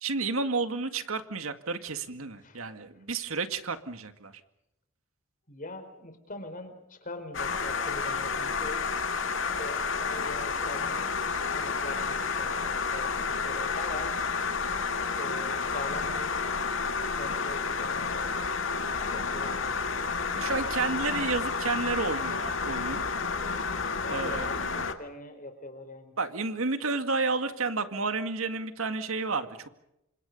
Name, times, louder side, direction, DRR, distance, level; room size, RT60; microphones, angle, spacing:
voice 1, 0.0-4.3 20.4-23.0 24.1-24.9 26.2-29.7, right 4 dB, 85° right, 8 dB, 2.1 m, -31 dB
voice 2, 5.5-8.9 9.4-11.1 11.5-14.2 15.2-16.7 17.1-18.6 19.1-19.8 20.2-20.7 24.0-26.1, left 2 dB, 40° left, 8 dB, 4.6 m, -42 dB
sound 1, 7.3-24.9, left 5 dB, 65° left, 2.0 m, -30 dB
28.5 x 26.5 x 5.5 m, 0.83 s
head